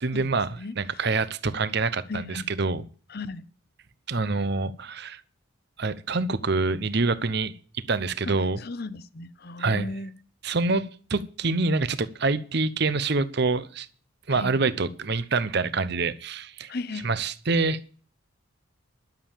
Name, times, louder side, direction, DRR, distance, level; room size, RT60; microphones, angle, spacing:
voice 1, 0.0-0.5 0.8-2.8 4.1-5.2 5.8-8.6 9.6-9.9 10.4-13.9 14.3-16.7 17.0-17.8, right 3 dB, 50° right, 0.8 m, -26 dB
voice 2, 2.1-2.5 3.1-3.4 8.3-10.1 14.3-14.5 16.7-17.2, left 3 dB, 45° left, 0.8 m, -36 dB
12.0 x 7.2 x 7.4 m
head